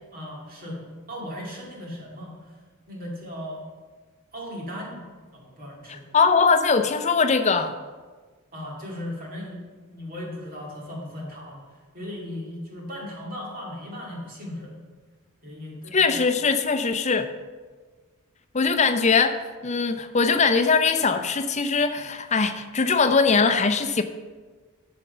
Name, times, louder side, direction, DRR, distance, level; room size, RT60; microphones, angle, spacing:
voice 1, 0.1-2.6 2.9-3.6 4.3-5.0 5.3-6.2 8.5-11.6 11.9-14.8 15.4-16.2, left 1 dB, 40° right, -2 dB, 2.3 m, -37 dB
voice 2, 6.1-7.7 15.9-17.3 18.5-24.0, left 4 dB, 30° left, 8 dB, 0.6 m, -21 dB
11.5 x 6.7 x 5.4 m, 1.4 s
head